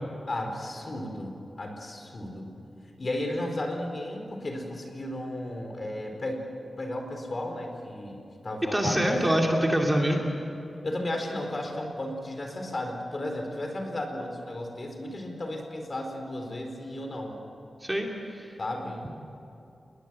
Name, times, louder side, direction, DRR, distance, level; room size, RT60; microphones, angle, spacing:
voice 1, 0.3-2.5 3.0-6.5 6.8-9.5 10.8-17.4 18.6-19.1, left 1 dB, 40° left, 3 dB, 4.5 m, -34 dB
voice 2, 8.7-10.3 17.8-18.5, equal, 10° right, 0 dB, 2.8 m, -25 dB
29.5 x 21.5 x 7.7 m, 2.8 s
wide cardioid pair, 110°, 0 cm